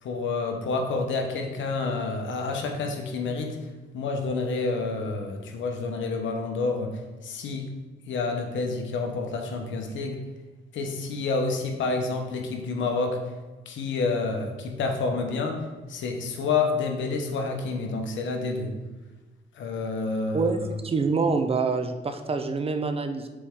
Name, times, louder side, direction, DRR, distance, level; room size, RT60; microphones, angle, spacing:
voice 1, 0.0-3.6 3.9-6.9 7.2-7.6 8.1-10.2 10.7-13.2 13.7-15.6 15.9-18.7 19.5-20.7, left 3 dB, 70° left, 4 dB, 1.1 m, -28 dB
voice 2, 20.3-23.3, right 4 dB, 30° right, 8 dB, 0.5 m, -26 dB
6.6 x 4.4 x 3.7 m, 1.2 s
cardioid pair, 90°, 20 cm